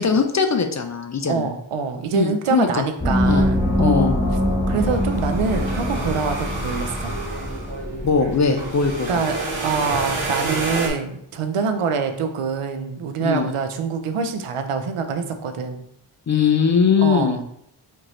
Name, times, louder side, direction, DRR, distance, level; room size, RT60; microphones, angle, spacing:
voice 1, 0.0-1.5 2.1-2.8 3.2-3.5 3.8-4.2 8.0-9.2 13.2-13.5 16.3-17.4, left 6 dB, 35° left, 6 dB, 0.4 m, -20 dB
voice 2, 1.3-4.1 4.7-7.1 9.1-9.4 9.6-15.8 17.0-17.5, right 5 dB, 85° right, 6 dB, 0.6 m, -25 dB
Gong, 3.0-8.2, equal, 15° left, 0.9 m, -23 dB
sound 1, 4.7-10.9, right 2 dB, 70° right, 1.2 m, -29 dB
4.4 x 2.7 x 3.0 m, 0.74 s
wide cardioid pair, 70°, 50 cm